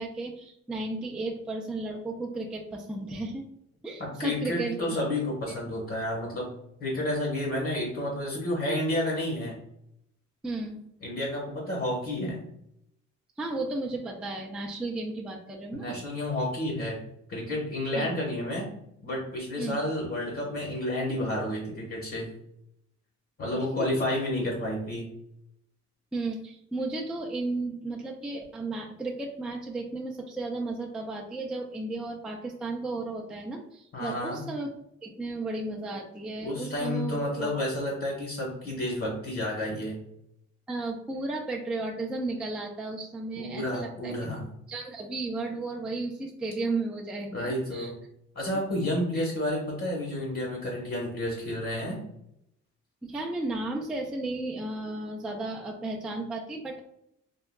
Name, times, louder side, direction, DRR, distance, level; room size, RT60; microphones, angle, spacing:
voice 1, 0.0-3.5 3.8-4.9 5.5-5.6 10.4-10.8 13.4-16.0 17.9-18.1 19.6-19.8 23.8-23.9 26.1-34.7 35.0-37.6 40.7-44.1 44.7-47.9 49.1-49.3 53.0-56.8, right 2 dB, 5° right, -1 dB, 0.3 m, -34 dB
voice 2, 4.0-6.5 6.8-9.6 11.0-12.4 15.7-17.0 17.3-18.7 19.0-22.3 23.4-25.1 33.9-34.5 36.4-40.0 43.4-44.4 47.3-47.9 48.3-52.0, left 1 dB, 50° left, -2 dB, 1.1 m, -30 dB
3.6 x 2.2 x 2.2 m, 0.76 s
cardioid pair, 90°, 30 cm